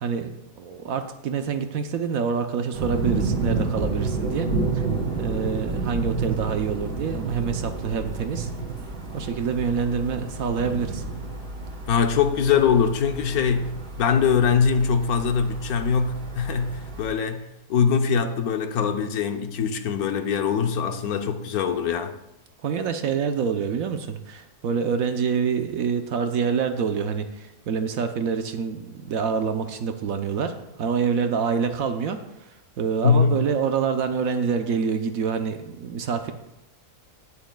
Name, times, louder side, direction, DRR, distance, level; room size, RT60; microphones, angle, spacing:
voice 1, 0.0-4.9 5.2-8.5 9.1-11.0 22.6-32.2 32.8-36.3, right 6 dB, 65° right, 1.1 m, -26 dB
sound 1, 2.7-17.1, right 3 dB, 85° right, 2.5 m, -30 dB
voice 2, 11.9-17.4 17.7-22.2 33.0-33.4, left 6 dB, 70° left, 1.2 m, -22 dB
18.0 x 7.1 x 2.2 m
omnidirectional pair, 1.7 m